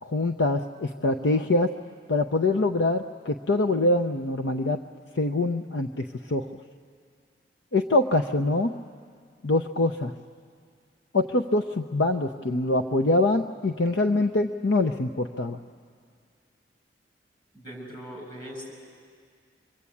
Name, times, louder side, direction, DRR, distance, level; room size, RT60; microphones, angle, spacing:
voice 1, 0.0-1.7 2.1-4.8 5.2-6.5 7.7-8.7 9.4-10.1 11.1-15.6, left 2 dB, 80° left, 7 dB, 0.7 m, -24 dB
voice 2, 17.5-18.7, equal, 30° left, -1 dB, 7.4 m, -40 dB
26.0 x 23.0 x 8.5 m, 2.1 s
head